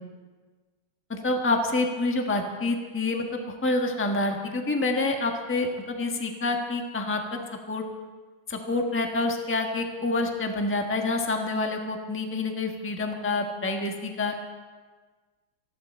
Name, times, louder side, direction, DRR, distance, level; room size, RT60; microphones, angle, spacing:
voice 1, 1.1-7.4 7.7-7.8 8.5-14.4, left 2 dB, 10° left, 3 dB, 1.1 m, -27 dB
19.5 x 15.0 x 4.4 m, 1.4 s
omnidirectional pair, 1.9 m